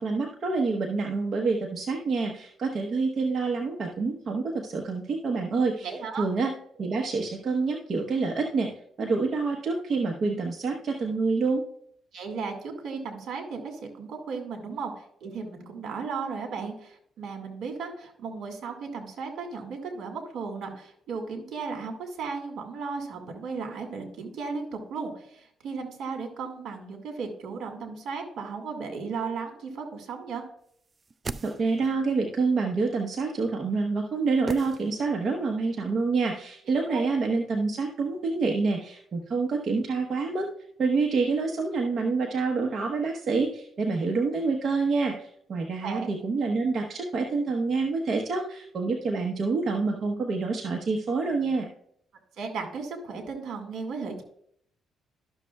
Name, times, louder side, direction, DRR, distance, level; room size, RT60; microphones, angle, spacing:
voice 1, 0.0-6.5 6.8-8.7 9.0-11.6 31.4-40.5 40.8-51.7, right 4 dB, 50° right, 1 dB, 1.0 m, -27 dB
voice 2, 5.8-6.3 12.1-30.4 36.9-37.0 45.8-46.1 52.4-54.2, right 5 dB, 70° right, 5 dB, 1.9 m, -35 dB
sound 1, 30.9-32.1 34.5-35.4 35.6-35.7, right 4 dB, 30° right, 0.4 m, -39 dB
12.5 x 6.3 x 2.3 m, 0.67 s
cardioid pair, 90°, 0 cm